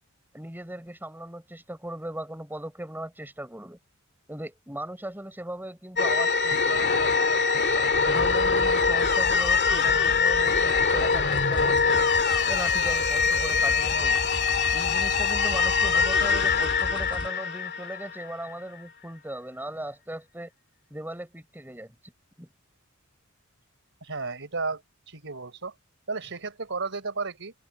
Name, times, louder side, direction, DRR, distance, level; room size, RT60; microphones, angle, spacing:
voice 1, 0.3-3.8 4.3-6.9 8.1-12.1 12.4-14.2 14.7-20.5 20.9-21.9 22.4-22.5, right 1 dB, 10° right, 7.6 m, -38 dB
sound 1, 6.0-18.5, left 5 dB, 50° left, 2.1 m, -23 dB
sound 2, 8.0-17.3, left 1 dB, 25° left, 7.9 m, -37 dB
voice 2, 24.0-25.7 26.1-27.5, right 4 dB, 60° right, 4.7 m, -33 dB
open air
head